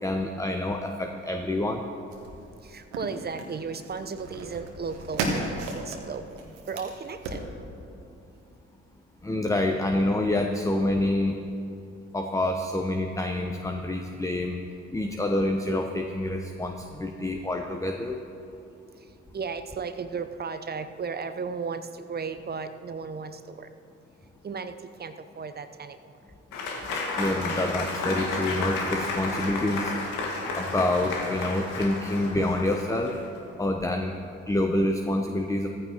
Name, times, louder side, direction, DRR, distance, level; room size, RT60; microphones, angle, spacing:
voice 1, 0.0-1.8 9.2-11.4 12.1-14.6 14.9-18.2 27.2-29.9 30.6-33.1 33.6-34.1 34.5-35.7, left 1 dB, 10° left, 4 dB, 0.9 m, -27 dB
sound 1, 2.1-7.4, right 2 dB, 75° right, 1.5 m, -35 dB
voice 2, 2.6-7.4 19.3-23.7 24.4-26.0, right 5 dB, 25° right, 10 dB, 0.8 m, -35 dB
Applause / Crowd, 26.5-33.3, left 3 dB, 65° left, 2.0 m, -32 dB
16.5 x 14.5 x 3.0 m, 2.6 s
figure-of-eight pair, 40°, 35 cm